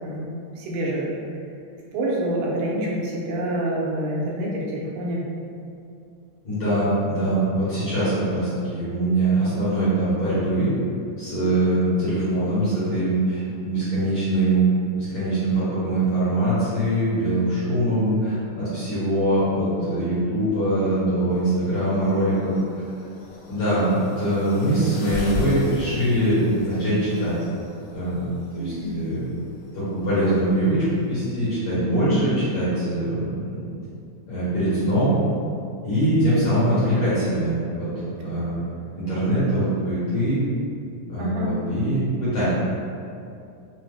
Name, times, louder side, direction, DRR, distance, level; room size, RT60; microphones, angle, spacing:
voice 1, 0.0-1.1 1.9-5.2 28.6-29.0 32.1-32.3 41.2-41.5, right 1 dB, 85° right, -4 dB, 2.4 m, -27 dB
voice 2, 6.4-10.7 11.2-14.7 14.9-22.5 23.5-27.4 27.9-29.3 29.7-33.3 33.6-33.7 34.3-35.1 35.8-37.9 38.2-38.6 38.9-40.4 41.1-42.4, right 1 dB, 60° left, -12 dB, 1.8 m, -23 dB
sound 1, 21.3-31.3, left 1 dB, 80° left, 2.2 m, -38 dB
5.4 x 2.1 x 3.2 m, 2.5 s
omnidirectional pair, 3.9 m